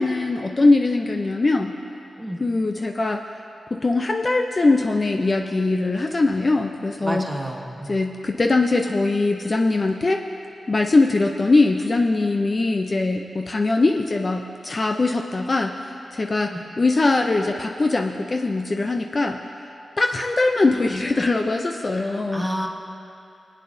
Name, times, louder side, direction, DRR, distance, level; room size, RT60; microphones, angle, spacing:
voice 1, 0.0-1.7 2.4-3.2 3.7-7.3 7.9-10.2 10.7-19.4 20.0-22.5, left 3 dB, 35° left, 3 dB, 0.5 m, -21 dB
voice 2, 7.0-8.0 16.5-16.6 21.9-22.7, equal, 10° right, 0 dB, 1.1 m, -30 dB
23.5 x 8.8 x 2.6 m, 2.8 s
wide cardioid pair, 100°, 0 cm